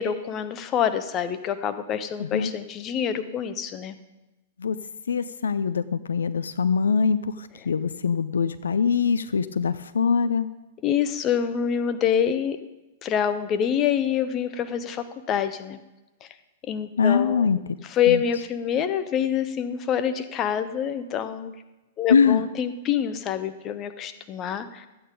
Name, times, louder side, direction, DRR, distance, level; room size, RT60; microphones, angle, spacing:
voice 1, 0.0-3.9 10.8-12.6 13.0-15.8 16.7-17.5 17.8-21.5 22.0-24.9, left 8 dB, 30° left, 11 dB, 0.8 m, -26 dB
voice 2, 2.2-2.5 4.6-4.8 5.1-7.2 7.7-10.5 17.0-17.6 18.1-18.2 22.1-22.4, left 6 dB, 65° left, 13 dB, 0.4 m, -22 dB
13.0 x 8.8 x 5.1 m, 1.0 s
figure-of-eight pair, 105°, 0 cm